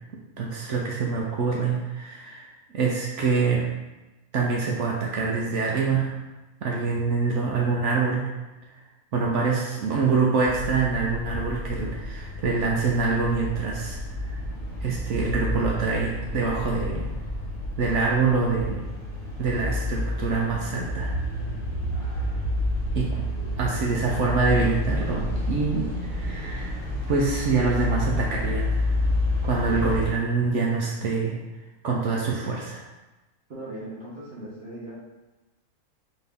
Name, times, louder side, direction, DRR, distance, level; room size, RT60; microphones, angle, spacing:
voice 1, 0.4-3.7 4.3-6.2 6.6-8.3 8.7-8.8 9.1-14.4 14.8-17.1 17.8-18.8 19.4-21.2 22.9-23.2 23.6-26.7 27.1-29.0 29.4-31.4 31.8-32.8, right 4 dB, 65° right, -2 dB, 0.8 m, -25 dB
sound 1, 10.4-30.1, left 1 dB, 30° left, 1.1 m, -29 dB
voice 2, 33.5-35.0, right 1 dB, 45° right, -8 dB, 1.2 m, -38 dB
4.1 x 2.7 x 3.5 m, 1.1 s
omnidirectional pair, 1.5 m